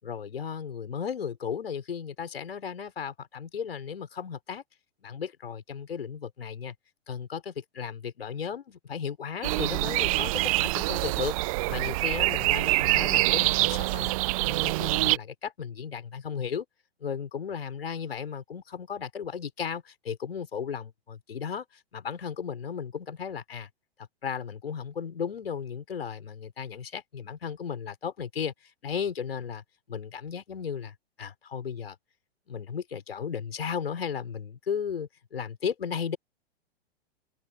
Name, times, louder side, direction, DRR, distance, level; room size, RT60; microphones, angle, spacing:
voice 1, 0.0-4.6 5.0-6.7 7.1-11.3 11.7-14.1 14.5-16.7 17.0-21.6 21.9-23.7 24.2-28.5 28.8-32.0 32.5-36.2, left 7 dB, 70° left, 5.7 m, -35 dB
sound 1, 9.4-15.2, right 21 dB, 35° right, 0.5 m, -25 dB
open air
figure-of-eight pair, 105°, 31 cm